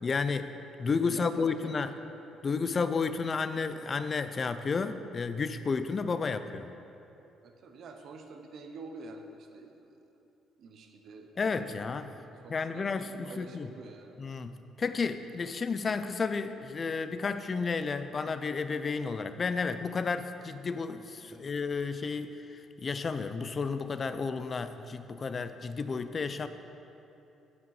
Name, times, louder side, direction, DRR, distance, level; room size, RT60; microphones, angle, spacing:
voice 1, 0.0-1.9 2.4-6.7 11.4-12.1 12.5-13.7 14.2-14.5 14.8-26.5, left 4 dB, 30° left, 11 dB, 0.4 m, -32 dB
voice 2, 1.1-1.9 7.4-10.2 10.6-11.9 12.2-14.2 18.0-18.1 21.2-21.5, right 3 dB, 55° right, 4 dB, 0.8 m, -48 dB
8.0 x 7.5 x 4.8 m, 2.9 s
cardioid pair, 140°, 0 cm